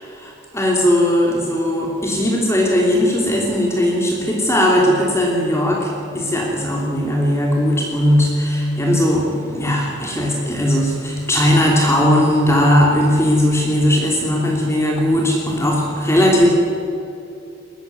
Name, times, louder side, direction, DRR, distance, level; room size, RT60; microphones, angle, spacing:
voice 1, 0.0-16.5, equal, 15° left, -2 dB, 3.0 m, -18 dB
21.0 x 15.0 x 9.5 m, 2.7 s
head